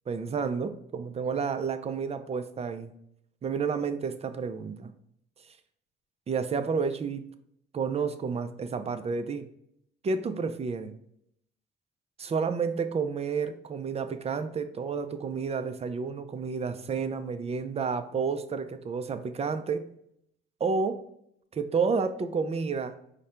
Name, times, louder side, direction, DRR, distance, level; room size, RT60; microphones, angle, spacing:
voice 1, 0.1-2.9 3.4-4.9 6.3-7.3 7.7-9.5 10.0-11.0 12.2-19.8 20.6-21.0 21.5-23.0, right 5 dB, 30° right, 10 dB, 0.4 m, -30 dB
4.8 x 2.2 x 4.3 m, 0.73 s
cardioid pair, 90°, 20 cm